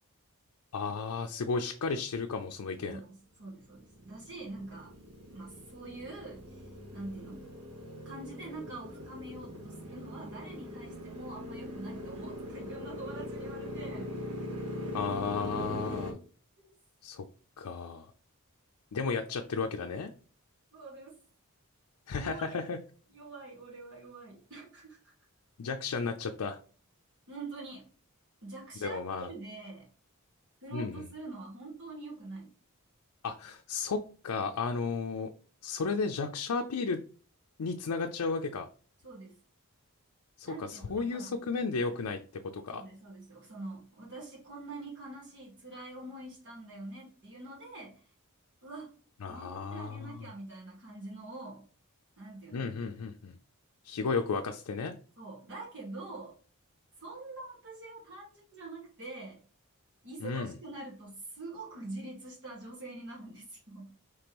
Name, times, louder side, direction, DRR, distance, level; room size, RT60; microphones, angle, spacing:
voice 1, 0.7-3.0 14.9-16.1 17.0-17.2 17.6-18.1 18.9-20.1 22.1-22.8 25.6-26.6 28.8-29.3 30.7-31.1 33.2-35.3 35.6-37.0 37.6-38.7 40.4-42.2 42.5-42.8 49.2-50.3 52.5-53.3 53.8-54.9 60.2-60.5, left 4 dB, 85° left, 4 dB, 0.5 m, -33 dB
voice 2, 2.8-4.9 5.3-7.5 8.0-14.1 20.7-21.2 22.2-22.6 23.1-25.1 27.3-27.9 28.4-29.9 30.6-32.5 39.0-39.4 40.4-41.4 42.7-48.0 48.6-48.9 49.3-51.7 52.2-52.7 55.2-56.4 57.0-59.4 60.0-64.0, right 2 dB, 55° right, -4 dB, 1.5 m, -45 dB
Motorcycle, 3.5-16.1, left 1 dB, 85° right, 1.2 m, -41 dB
5.2 x 3.3 x 2.9 m, 0.40 s
head